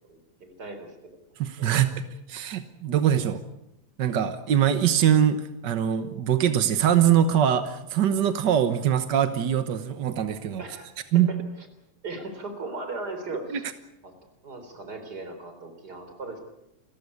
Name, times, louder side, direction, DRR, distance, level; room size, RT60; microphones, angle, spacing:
voice 1, 0.1-1.1 1.6-1.8 10.6-10.9 11.1-11.2 12.0-13.7 14.0-14.1 14.4-16.4, right 3 dB, 30° right, 7 dB, 4.2 m, -38 dB
voice 2, 1.4-1.9 2.3-3.4 4.0-10.6 11.1-11.3 13.5-13.6, right 9 dB, 60° right, 10 dB, 1.1 m, -23 dB
28.5 x 15.0 x 8.5 m, 0.86 s
omnidirectional pair, 3.4 m